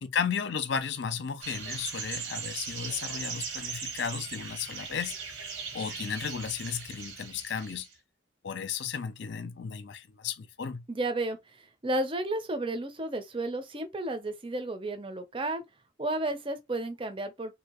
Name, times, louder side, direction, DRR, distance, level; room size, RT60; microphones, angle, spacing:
voice 1, 0.0-5.2 5.7-7.9 8.4-10.8, left 6 dB, 55° left, 0.5 m, -34 dB
sound 1, 1.4-7.9, right 5 dB, 80° right, 1.0 m, -39 dB
voice 2, 10.9-11.4 11.8-15.6 16.0-17.6, right 2 dB, 25° right, 0.5 m, -32 dB
3.3 x 2.7 x 2.9 m
head